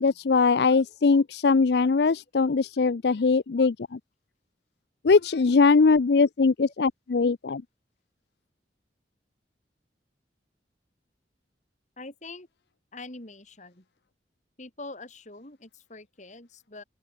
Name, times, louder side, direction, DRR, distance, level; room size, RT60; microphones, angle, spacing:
voice 1, 0.0-4.0 5.0-7.6, left 4 dB, 65° left, 0.5 m, -21 dB
voice 2, 12.0-12.5 12.9-13.8 14.6-16.8, left 2 dB, 40° left, 3.1 m, -44 dB
open air
head